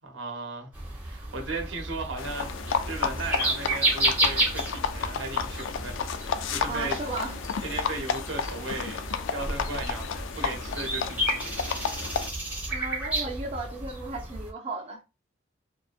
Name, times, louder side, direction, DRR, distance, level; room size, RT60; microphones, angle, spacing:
voice 1, 0.0-0.7 1.0-7.0 7.6-9.0 9.3-11.6, right 3 dB, 85° right, 0.7 m, -36 dB
sound 1, 0.7-14.5, right 1 dB, 10° right, 0.8 m, -32 dB
sound 2, 2.2-12.3, left 7 dB, 85° left, 0.3 m, -32 dB
voice 2, 6.7-7.4 12.7-15.0, right 2 dB, 35° right, 0.5 m, -35 dB
2.6 x 2.2 x 2.3 m
head